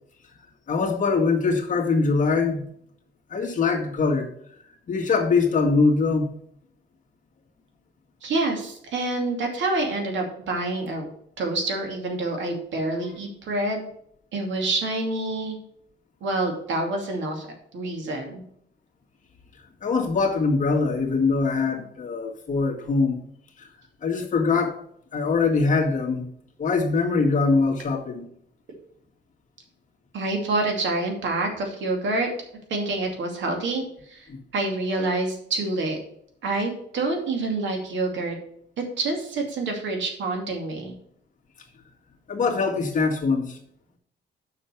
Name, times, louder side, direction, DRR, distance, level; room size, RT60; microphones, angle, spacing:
voice 1, 0.7-2.7 3.3-4.3 4.9-6.3 19.8-23.2 23.6-23.7 24.0-24.8 25.1-26.3 26.6-28.3 34.3-34.4 42.3-43.6, left 4 dB, 45° left, 1 dB, 1.8 m, -23 dB
voice 2, 8.2-11.1 11.4-13.9 14.3-15.6 16.2-17.5 17.7-18.4 30.1-32.3 32.7-33.8 34.1-34.3 34.5-36.0 36.4-38.4 38.8-40.9, right 2 dB, 80° right, 2 dB, 2.7 m, -27 dB
6.9 x 5.9 x 6.9 m, 0.67 s
cardioid pair, 155°, 19 cm